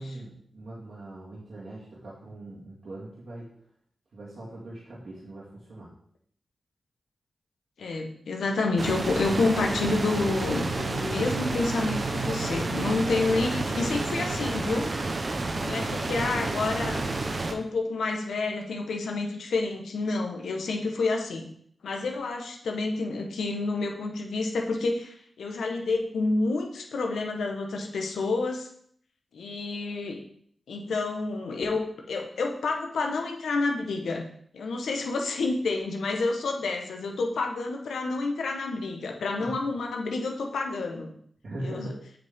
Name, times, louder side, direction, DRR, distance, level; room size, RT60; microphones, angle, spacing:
voice 1, 0.0-3.5 4.1-5.9 39.4-39.5 41.4-42.0, right 1 dB, 75° right, -7 dB, 2.0 m, -40 dB
voice 2, 7.8-14.9 15.6-17.2 17.5-21.5 21.8-28.7 29.3-30.2 30.7-34.2 34.5-41.1 41.6-41.9, left 3 dB, 90° left, 2 dB, 1.2 m, -29 dB
sound 1, 8.8-17.5, right 3 dB, 55° right, 0.9 m, -30 dB
7.8 x 5.2 x 3.7 m, 0.63 s
cardioid pair, 50°, 0 cm